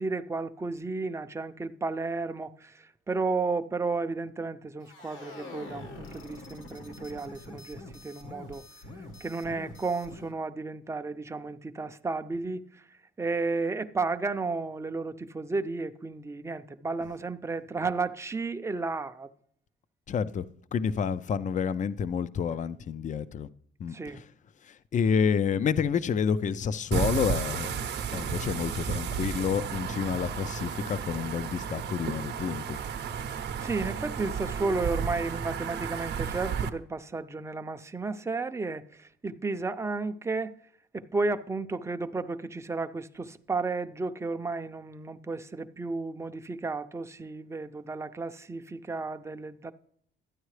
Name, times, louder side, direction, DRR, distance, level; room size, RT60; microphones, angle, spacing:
voice 1, 0.0-8.7 9.2-12.9 13.2-19.3 23.9-24.3 33.6-40.5 40.9-49.7, right 3 dB, 15° right, 0.6 m, -33 dB
sound 1, 4.8-10.3, left 2 dB, 75° left, 1.6 m, -45 dB
voice 2, 20.1-23.5 23.8-24.2 24.6-32.8, left 7 dB, 40° left, 0.5 m, -29 dB
sound 2, 26.9-36.7, right 7 dB, 60° right, 0.8 m, -33 dB
12.5 x 9.1 x 3.2 m
cardioid pair, 90°, 20 cm